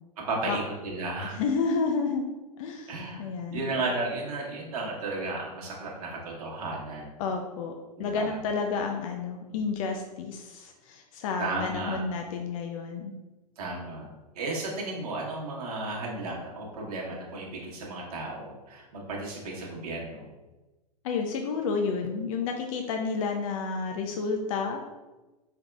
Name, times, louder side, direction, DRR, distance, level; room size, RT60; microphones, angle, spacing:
voice 1, 0.2-1.4 2.9-3.2 3.5-7.1 8.0-8.4 11.4-12.0 13.6-14.1 14.3-20.2, right 2 dB, 65° right, -3 dB, 1.3 m, -34 dB
voice 2, 1.2-2.3 2.6-3.7 7.2-7.7 8.0-13.1 21.0-24.8, left 4 dB, 55° left, 3 dB, 0.5 m, -30 dB
4.7 x 3.5 x 2.4 m, 1.1 s
hypercardioid pair, 105°, 21 cm